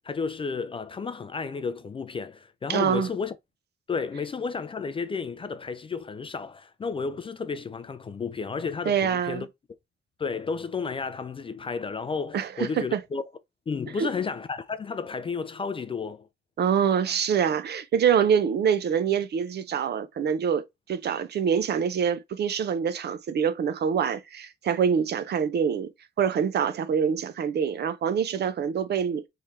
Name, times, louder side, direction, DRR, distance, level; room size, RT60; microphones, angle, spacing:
voice 1, 0.0-3.3 3.9-9.5 10.2-13.2 13.7-16.3, left 5 dB, 25° left, 0.3 m, -32 dB
voice 2, 2.7-3.1 8.9-9.4 12.3-13.0 14.0-14.1 16.6-25.9 26.2-29.3, right 7 dB, 50° right, 0.5 m, -25 dB
3.7 x 3.2 x 4.2 m
wide cardioid pair, 175°, 21 cm